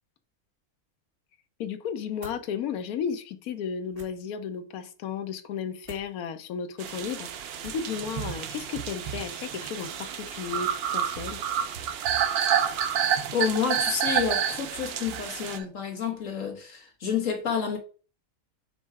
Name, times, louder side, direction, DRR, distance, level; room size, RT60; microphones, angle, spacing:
voice 1, 1.6-11.4, left 7 dB, 75° left, 1.2 m, -34 dB
sound 1, 2.2-2.4 3.9-4.1 5.8-6.1 7.6-7.9, right 1 dB, 40° right, 2.0 m, -45 dB
sound 2, 6.8-15.6, right 9 dB, 65° right, 0.6 m, -39 dB
sound 3, 7.9-15.6, right 8 dB, 85° right, 1.3 m, -28 dB
voice 2, 12.3-17.8, left 6 dB, 60° left, 1.7 m, -30 dB
6.8 x 3.1 x 4.6 m
omnidirectional pair, 1.6 m